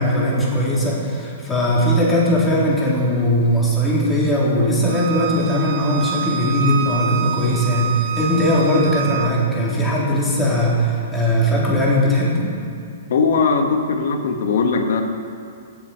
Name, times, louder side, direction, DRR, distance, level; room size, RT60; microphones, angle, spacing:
voice 1, 0.0-12.5, equal, 10° left, -6 dB, 3.5 m, -19 dB
Bowed string instrument, 4.9-9.3, right 9 dB, 50° right, 1.1 m, -27 dB
voice 2, 13.1-15.0, left 4 dB, 70° left, 5 dB, 1.6 m, -19 dB
16.5 x 7.6 x 5.7 m, 2.5 s
hypercardioid pair, 135°, 0 cm